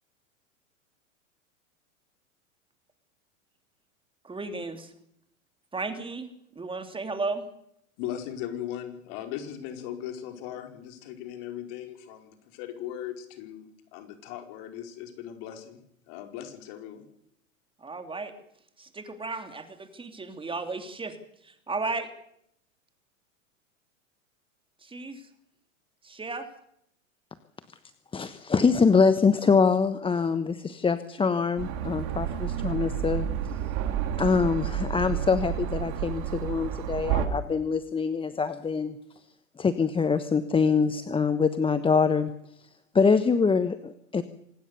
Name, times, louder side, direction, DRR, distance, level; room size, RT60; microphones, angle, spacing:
voice 1, 4.2-4.9 5.7-7.5 17.8-18.3 18.8-21.2 21.4-22.1 24.8-25.3 26.0-26.5, right 3 dB, 15° right, 7 dB, 3.1 m, -34 dB
voice 2, 8.0-15.8 16.1-17.0, left 10 dB, 50° left, 5 dB, 5.0 m, -38 dB
voice 3, 28.1-33.3 34.2-39.0 39.6-42.3 42.9-44.2, left 5 dB, 15° left, 12 dB, 1.2 m, -24 dB
sound 1, 31.6-37.3, right 10 dB, 45° right, 3.8 m, -30 dB
26.5 x 18.5 x 6.9 m, 0.73 s
hypercardioid pair, 105°, 40 cm